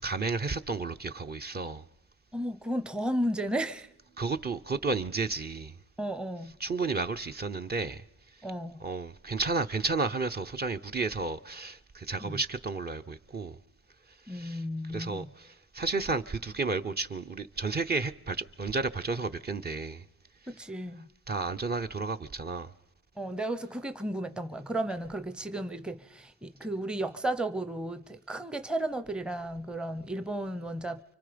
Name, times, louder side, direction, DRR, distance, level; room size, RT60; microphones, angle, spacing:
voice 1, 0.0-1.8 4.2-5.7 6.6-8.0 8.8-13.6 14.3-14.6 14.9-20.0 21.3-22.7, right 3 dB, 30° right, 0.8 m, -32 dB
voice 2, 2.3-3.9 6.0-6.6 8.4-8.8 12.2-12.4 14.3-15.3 20.5-21.1 23.2-31.0, right 1 dB, 5° right, 0.8 m, -34 dB
29.5 x 24.5 x 5.2 m
cardioid pair, 90°, 30 cm